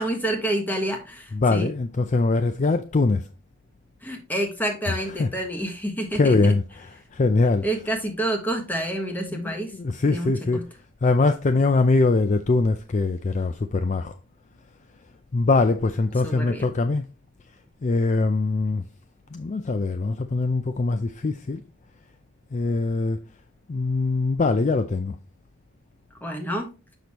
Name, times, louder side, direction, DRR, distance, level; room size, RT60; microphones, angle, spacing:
voice 1, 0.0-1.7 4.0-6.4 7.6-9.7 10.0-10.6 16.2-16.7 26.2-26.7, right 1 dB, 10° left, 1.3 m, -28 dB
voice 2, 1.3-3.2 4.9-5.3 6.1-7.7 9.3-10.6 11.0-14.1 15.3-17.0 17.8-18.8 19.3-21.6 22.5-23.2 23.7-25.2, left 3 dB, 35° left, 0.4 m, -22 dB
6.8 x 6.1 x 2.9 m
head